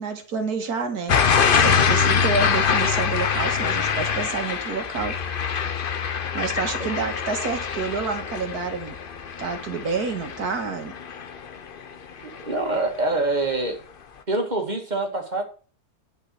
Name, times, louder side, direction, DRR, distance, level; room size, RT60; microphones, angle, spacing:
voice 1, 0.0-5.2 5.5-5.6 6.3-9.0 9.4-10.9, right 4 dB, 70° right, 2.1 m, -29 dB
sound 1, 1.1-11.9 12.3-12.8, left 6 dB, 45° left, 0.8 m, -24 dB
voice 2, 12.2-13.8 14.3-15.4, right 2 dB, 25° right, 2.4 m, -25 dB
11.0 x 5.7 x 6.0 m
omnidirectional pair, 1.7 m